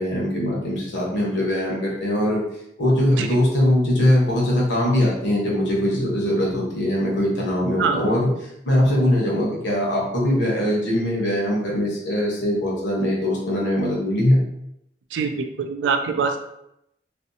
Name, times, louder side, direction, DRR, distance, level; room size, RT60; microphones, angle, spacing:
voice 1, 0.0-2.4 2.8-14.4, left 1 dB, 85° left, -4 dB, 0.9 m, -21 dB
voice 2, 15.1-16.4, right 5 dB, 85° right, 6 dB, 0.3 m, -23 dB
2.6 x 2.0 x 2.6 m, 0.80 s
head